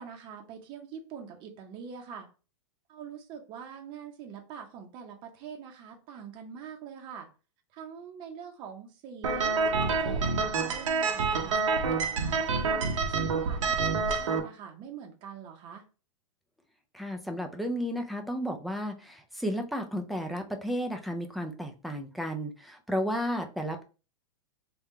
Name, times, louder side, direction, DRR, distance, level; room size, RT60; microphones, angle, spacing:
voice 1, 0.0-2.3 2.9-7.3 7.7-11.7 12.3-15.8, right 7 dB, 30° right, 3 dB, 0.7 m, -44 dB
sound 1, 9.2-14.4, right 4 dB, 90° right, 0.8 m, -27 dB
voice 2, 16.9-23.8, equal, ahead, 4 dB, 0.4 m, -33 dB
3.5 x 2.3 x 4.2 m, 0.34 s
hypercardioid pair, 140°, 16 cm